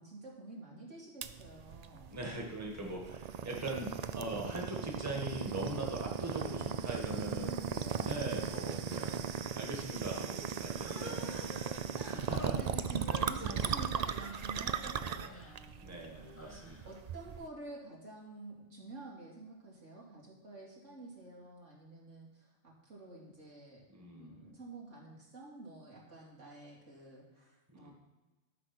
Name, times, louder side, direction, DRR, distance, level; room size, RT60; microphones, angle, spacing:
voice 1, 0.0-2.1 7.2-8.5 10.9-11.4 11.9-16.0 16.8-23.8 24.1-27.9, right 2 dB, 80° right, -3 dB, 3.3 m, -49 dB
sound 1, 1.2-17.5, right 7 dB, 55° right, 0.4 m, -37 dB
voice 2, 2.1-7.5 8.0-9.2 9.5-11.2 12.0-12.6 13.4-13.6 15.8-16.8 23.9-24.5 27.7-27.9, right 1 dB, 15° right, -1 dB, 1.7 m, -41 dB
Human voice, 10.7-11.9 12.3-14.6 15.0-15.6 16.2-16.9, left 2 dB, 15° left, 0.7 m, -50 dB
12.0 x 6.3 x 6.1 m, 1.2 s
omnidirectional pair, 1.2 m